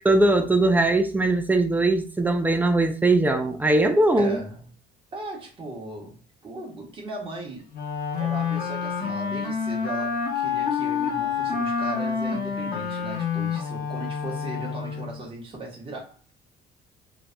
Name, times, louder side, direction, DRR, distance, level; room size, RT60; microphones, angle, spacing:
voice 1, 0.0-4.4, right 2 dB, 10° right, 0.4 m, -20 dB
voice 2, 4.2-4.6 5.1-7.6 8.2-16.3, right 2 dB, 30° right, 1.2 m, -38 dB
Wind instrument woodwind instrument, 7.7-15.2, left 6 dB, 65° left, 0.9 m, -28 dB
3.1 x 2.6 x 2.2 m
cardioid pair, 110°, 17 cm